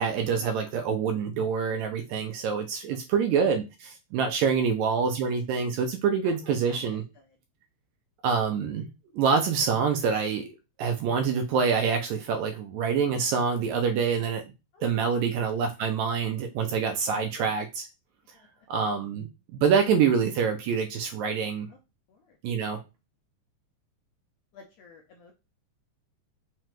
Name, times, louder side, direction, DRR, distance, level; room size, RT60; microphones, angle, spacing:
voice 1, 0.0-7.0 8.2-8.9 9.1-10.5 10.8-14.4 14.8-17.9 18.7-21.7 22.4-22.8, right 6 dB, 80° right, 6 dB, 1.7 m, -26 dB
voice 2, 2.9-3.2 4.3-4.7 6.2-7.3 14.7-15.1 18.3-18.7 21.7-21.8 22.1-22.4 24.5-25.3, left 4 dB, 75° left, 1 dB, 1.5 m, -52 dB
5.7 x 2.2 x 3.0 m, 0.27 s
omnidirectional pair, 3.5 m